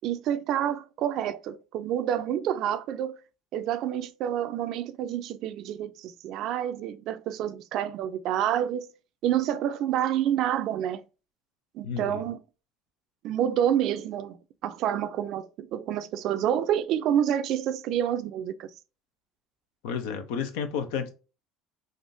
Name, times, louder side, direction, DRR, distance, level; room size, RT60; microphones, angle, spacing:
voice 1, 0.0-3.2 3.5-8.9 9.2-11.0 11.7-12.4 13.2-18.7, right 10 dB, 60° right, 0.4 m, -28 dB
voice 2, 11.8-12.3 19.8-21.1, left 6 dB, 80° left, 0.7 m, -31 dB
3.5 x 2.5 x 2.6 m
supercardioid pair, 90°, 0 cm